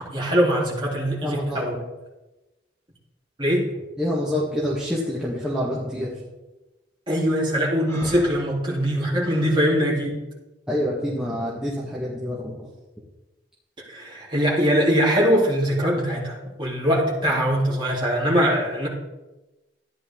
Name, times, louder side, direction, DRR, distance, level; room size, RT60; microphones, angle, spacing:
voice 1, 0.0-1.7 3.4-3.6 7.1-10.1 13.9-18.9, equal, 25° right, -4 dB, 3.6 m, -22 dB
voice 2, 1.2-1.8 4.0-6.1 10.7-12.5, equal, 5° right, -7 dB, 1.7 m, -27 dB
Breathing, 7.9-9.6, equal, 15° left, 3.2 m, -40 dB
13.5 x 10.5 x 3.8 m, 1.1 s
head